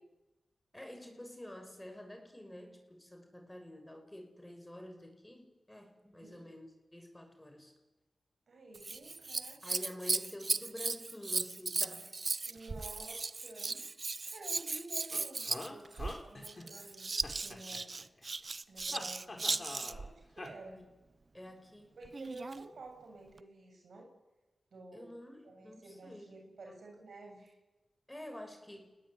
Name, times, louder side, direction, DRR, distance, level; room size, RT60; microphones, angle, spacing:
voice 1, 0.7-7.7 9.6-12.2 13.7-13.9 20.8-20.9 21.3-22.0 24.9-26.3 26.6-26.8 28.1-29.0, left 1 dB, 15° left, 5 dB, 6.5 m, -49 dB
voice 2, 8.5-9.8 12.4-13.8 14.3-17.9 18.7-20.8 22.0-24.1 24.7-25.1 25.4-27.6, right 2 dB, 75° right, 1 dB, 7.3 m, -51 dB
Scissors, 8.7-20.1 22.0-22.7 23.4-23.5, right 3 dB, 55° right, 0.8 m, -37 dB
sound 1, 15.1-16.9 17.2-18.3 18.9-20.1 20.4-20.5, left 2 dB, 45° left, 5.2 m, -45 dB
29.5 x 19.5 x 9.8 m, 1.1 s
cardioid pair, 45°, 0 cm